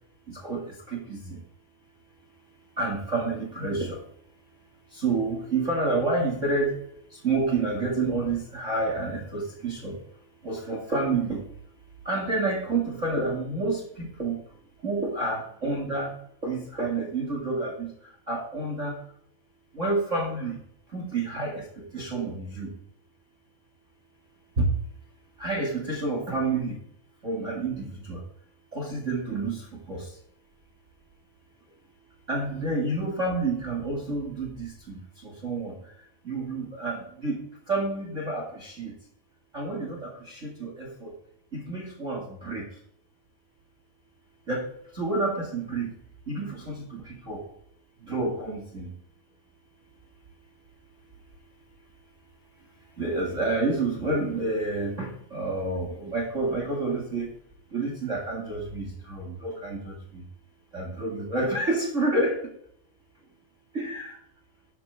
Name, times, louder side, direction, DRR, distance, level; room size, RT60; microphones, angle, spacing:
voice 1, 2.8-4.0 5.0-6.8 7.2-9.9 10.4-11.4 12.0-14.3 14.8-16.1 16.4-17.9 18.3-19.0 19.7-20.5 20.9-21.6 21.9-22.7 24.6-24.7 25.4-26.7 27.2-28.2 28.7-29.6 29.9-30.0 32.3-35.0 35.4-35.7 36.3-37.4 37.7-38.9 39.5-41.1 41.5-42.6 44.5-44.6 45.0-45.9 46.3-47.4 48.1-48.9 53.0-57.3 57.7-59.9 60.7-62.4 63.7-64.1, right 2 dB, 30° right, 0 dB, 1.6 m, -29 dB
13.5 x 11.0 x 3.5 m, 0.68 s
omnidirectional pair, 4.4 m